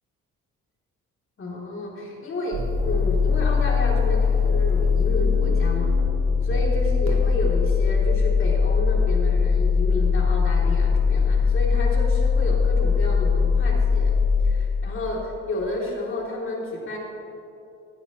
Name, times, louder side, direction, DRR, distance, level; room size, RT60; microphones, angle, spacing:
voice 1, 1.4-5.9 6.4-14.1 14.4-17.0, left 1 dB, 45° left, -3 dB, 3.1 m, -31 dB
sound 1, 2.5-14.5, left 5 dB, 65° right, 2.6 m, -21 dB
15.5 x 10.5 x 3.1 m, 2.7 s
cardioid pair, 90°, 30 cm